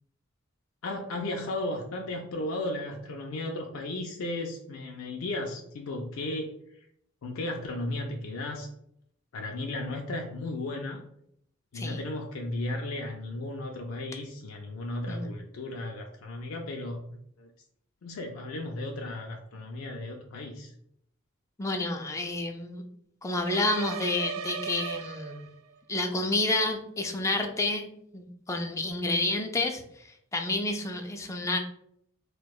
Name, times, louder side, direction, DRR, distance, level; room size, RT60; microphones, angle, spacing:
voice 1, 0.8-6.9 7.2-8.7 9.3-11.0 11.7-17.0 17.4-17.5 18.0-20.7, left 2 dB, 90° left, 1 dB, 0.4 m, -35 dB
voice 2, 21.6-22.8 23.2-25.5 25.9-31.6, left 2 dB, 15° left, 4 dB, 0.4 m, -30 dB
sound 1, 23.4-25.8, right 7 dB, 90° right, 0.3 m, -37 dB
4.3 x 2.2 x 2.3 m, 0.71 s
head